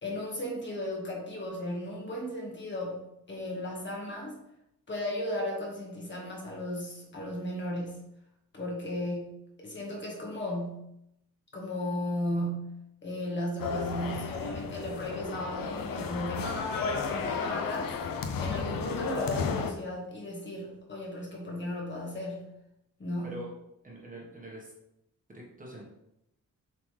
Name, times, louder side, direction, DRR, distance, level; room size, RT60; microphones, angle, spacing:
voice 1, 0.0-4.4 4.9-8.0 8.5-10.9 11.5-17.9 18.4-22.5 23.0-23.4, left 1 dB, 35° left, -3 dB, 1.6 m, -35 dB
sound 1, 13.6-19.7, left 5 dB, 85° left, 0.7 m, -33 dB
voice 2, 23.8-24.7 25.3-25.8, equal, 25° right, -3 dB, 1.3 m, -43 dB
7.3 x 4.2 x 3.3 m, 0.82 s
wide cardioid pair, 165°, 33 cm